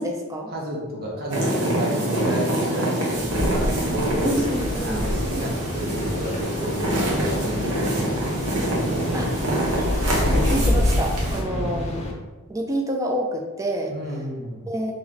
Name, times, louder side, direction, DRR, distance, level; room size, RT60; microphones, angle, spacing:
voice 1, 0.0-0.5 4.2-5.1 9.1-9.3 10.3-11.9 12.5-13.9 14.7-14.9, right 1 dB, 15° right, 1 dB, 0.4 m, -27 dB
voice 2, 0.5-4.3 4.8-9.3 9.8-10.4 11.5-11.7 13.9-14.7, equal, 45° right, -3 dB, 0.8 m, -32 dB
sound 1, 1.3-11.4, right 1 dB, 85° right, 1.1 m, -26 dB
sound 2, 3.1-12.1, left 1 dB, 30° left, 0.6 m, -27 dB
3.1 x 3.0 x 3.9 m, 1.2 s
head